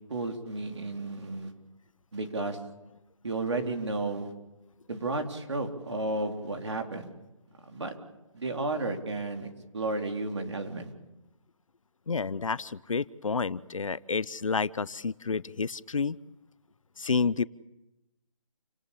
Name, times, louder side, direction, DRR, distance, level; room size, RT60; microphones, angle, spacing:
voice 1, 0.1-1.5 2.1-2.6 3.2-4.3 4.9-7.1 7.7-7.9 8.3-10.9, right 2 dB, 55° right, 4 dB, 3.9 m, -33 dB
voice 2, 12.1-16.2 17.0-17.4, left 5 dB, 70° left, 19 dB, 0.8 m, -30 dB
29.0 x 19.0 x 8.5 m, 0.98 s
hypercardioid pair, 175°, 17 cm